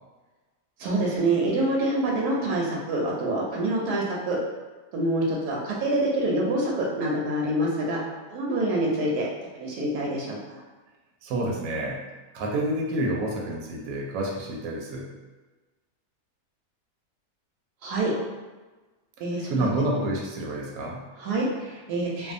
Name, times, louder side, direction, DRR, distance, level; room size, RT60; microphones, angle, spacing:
voice 1, 0.8-4.4 4.9-8.0 8.3-9.3 9.5-10.6 17.8-18.1 19.2-19.7 21.2-22.3, right 1 dB, 90° right, -3 dB, 1.2 m, -26 dB
voice 2, 11.2-12.0 12.3-15.1 19.5-21.1, right 1 dB, 70° right, -2 dB, 1.0 m, -28 dB
2.6 x 2.3 x 2.5 m, 1.3 s
omnidirectional pair, 1.6 m